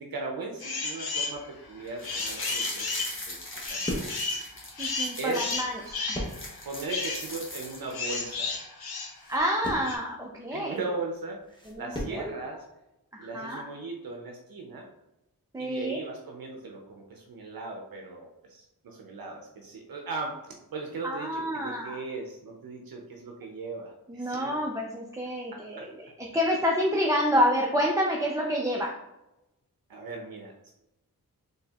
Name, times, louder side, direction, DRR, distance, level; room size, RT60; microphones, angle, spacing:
voice 1, 0.0-2.9 3.1-4.2 5.2-5.5 6.6-8.6 10.5-12.7 13.2-14.9 15.6-24.6 25.5-25.9 29.9-30.7, right 3 dB, 75° right, 1 dB, 0.6 m, -38 dB
sound 1, 0.6-1.4 1.8-10.0, left 3 dB, 90° left, 0.8 m, -33 dB
sound 2, 1.9-5.6 6.0-6.1 6.2-8.1 8.5-8.6, left 1 dB, 35° left, 1.1 m, -40 dB
sound 3, 3.1-12.3, equal, 15° left, 0.8 m, -39 dB
voice 2, 4.8-6.2 9.3-10.8 11.7-12.3 13.1-13.6 15.5-16.0 21.0-22.0 24.1-28.9, equal, 10° right, -2 dB, 0.4 m, -28 dB
4.2 x 3.3 x 2.3 m, 0.90 s
wide cardioid pair, 105°, 36 cm